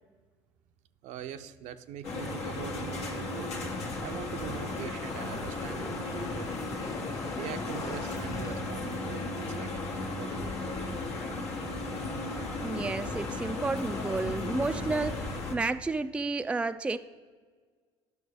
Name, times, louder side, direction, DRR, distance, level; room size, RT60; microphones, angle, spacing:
voice 1, 1.0-3.5 4.0-6.5 7.3-10.9, right 9 dB, 65° right, 10 dB, 0.6 m, -42 dB
sound 1, 2.0-15.5, left 2 dB, 80° left, 1.5 m, -35 dB
sound 2, 4.2-8.7, left 3 dB, 25° left, 0.7 m, -42 dB
voice 2, 12.4-17.0, right 3 dB, 10° right, 10 dB, 0.3 m, -31 dB
10.5 x 6.0 x 5.1 m, 1.5 s
hypercardioid pair, 60°, 14 cm